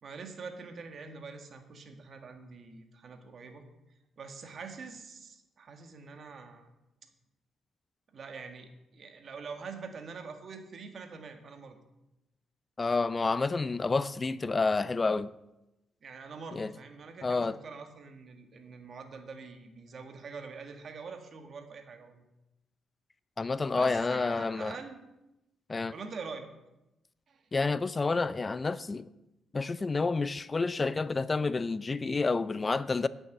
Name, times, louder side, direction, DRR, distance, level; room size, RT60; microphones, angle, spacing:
voice 1, 0.0-3.7 4.2-6.7 8.1-11.8 16.0-22.2 23.7-25.0 25.9-26.5 27.3-27.5, right 4 dB, 55° right, 1.7 m, -45 dB
voice 2, 12.8-15.3 16.5-16.7 17.2-17.6 23.4-24.8 25.7-25.9 27.5-29.1 29.5-33.1, left 3 dB, 30° left, 0.5 m, -29 dB
8.9 x 7.2 x 7.9 m
cardioid pair, 70°, 0 cm